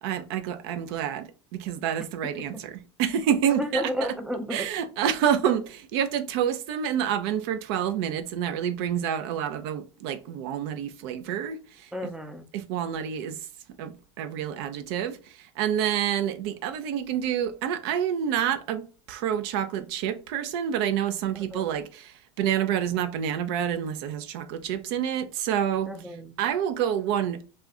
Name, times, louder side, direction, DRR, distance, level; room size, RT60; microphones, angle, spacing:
voice 1, 0.0-3.9 4.5-11.6 12.5-13.4 13.8-15.2 15.6-22.1 22.4-25.9 26.4-27.4, right 9 dB, 55° right, 0.5 m, -28 dB
voice 2, 3.6-4.7 11.9-12.4 21.3-21.6 25.9-26.3, equal, 5° right, 0.5 m, -32 dB
2.4 x 2.2 x 3.5 m
hypercardioid pair, 105°, 15 cm